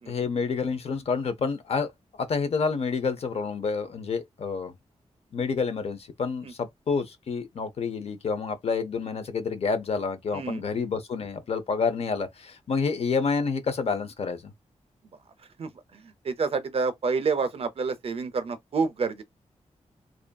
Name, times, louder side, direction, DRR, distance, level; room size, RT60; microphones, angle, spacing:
voice 1, 0.1-1.9 2.2-4.7 5.3-14.5, left 5 dB, 60° left, 0.5 m, -28 dB
voice 2, 10.3-10.6 15.6-19.2, right 4 dB, 55° right, 0.4 m, -29 dB
2.5 x 2.4 x 2.2 m
wide cardioid pair, 150°, 12 cm